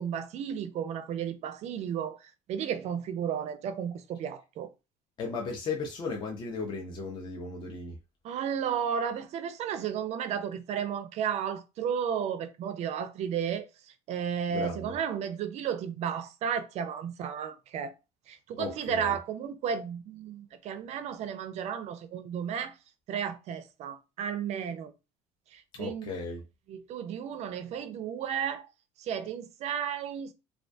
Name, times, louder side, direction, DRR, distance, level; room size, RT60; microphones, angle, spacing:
voice 1, 0.0-4.7 8.2-13.7 14.1-17.9 18.3-22.8 23.1-24.9 25.5-26.1 26.7-28.7 29.0-30.3, right 8 dB, 50° right, 0.4 m, -33 dB
voice 2, 5.2-8.0 14.5-14.9 18.6-19.2 25.7-26.4, left 4 dB, 35° left, 0.5 m, -36 dB
2.3 x 2.2 x 2.5 m
cardioid pair, 125°, 15 cm